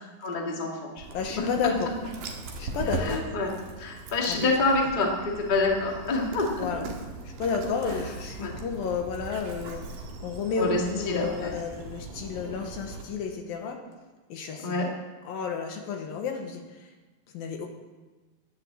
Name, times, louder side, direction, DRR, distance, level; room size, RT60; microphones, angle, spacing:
voice 1, 0.2-0.9 1.4-1.7 3.0-3.5 3.8-6.5 8.4-8.5 10.6-10.8 11.1-11.5 12.4-12.6 14.6-14.9, left 3 dB, 15° left, -1 dB, 1.7 m, -27 dB
Dog, 1.0-13.0, right 3 dB, 60° right, 3.2 m, -39 dB
voice 2, 1.1-2.0 2.6-3.2 4.3-4.5 6.6-6.9 7.2-10.0 10.2-13.8 14.3-14.8 15.2-16.9 17.3-17.7, left 5 dB, 70° left, 3 dB, 2.9 m, -31 dB
21.0 x 7.7 x 7.6 m, 1.2 s
omnidirectional pair, 4.5 m